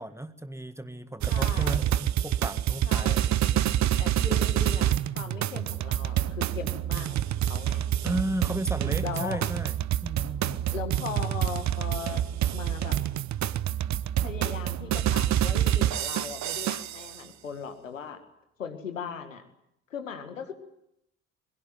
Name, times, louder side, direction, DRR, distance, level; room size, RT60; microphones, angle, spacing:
voice 1, 0.0-3.8 8.0-9.7 10.0-10.7, right 1 dB, 5° right, 11 dB, 1.7 m, -35 dB
voice 2, 1.2-1.9 2.8-3.3 4.0-7.9 9.0-9.4 10.7-12.2 12.5-13.0 14.2-18.2 18.6-19.4 19.9-20.5, left 6 dB, 85° left, 8 dB, 2.0 m, -38 dB
sound 1, 1.2-17.1, right 12 dB, 45° right, 0.9 m, -27 dB
23.5 x 22.5 x 9.3 m, 0.79 s
figure-of-eight pair, 45°, 38 cm